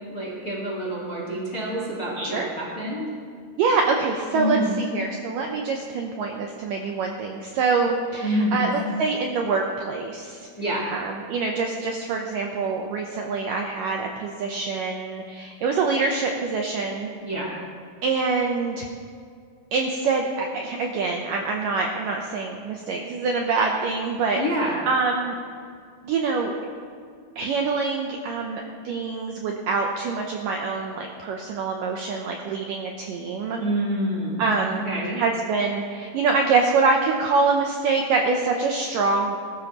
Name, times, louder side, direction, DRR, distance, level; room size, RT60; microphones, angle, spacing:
voice 1, 0.0-3.1 4.3-4.9 8.2-8.8 10.6-10.8 17.2-17.5 24.3-24.8 33.6-34.5 34.8-35.2, equal, 45° left, -4 dB, 1.2 m, -27 dB
voice 2, 2.2-2.5 3.6-4.6 4.9-10.5 10.9-17.1 18.0-18.9 19.7-24.4 24.9-25.4 26.0-26.5 27.4-33.6 34.4-34.9 35.2-39.4, right 4 dB, 90° right, 1 dB, 1.9 m, -25 dB
19.5 x 13.0 x 3.0 m, 2.2 s
omnidirectional pair, 4.9 m